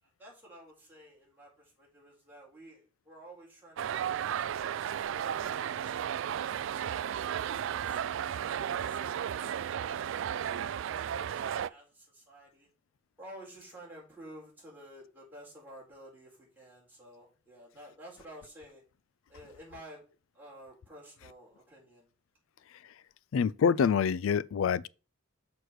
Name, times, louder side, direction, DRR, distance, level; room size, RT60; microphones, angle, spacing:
voice 1, 0.0-6.0 8.5-12.7 13.2-18.8 19.3-20.0 20.3-22.1, right 1 dB, 10° right, 4.3 m, -52 dB
sound 1, 3.8-11.7, right 9 dB, 65° right, 0.3 m, -34 dB
voice 2, 23.3-24.9, left 6 dB, 70° left, 0.4 m, -26 dB
6.5 x 4.8 x 6.1 m
head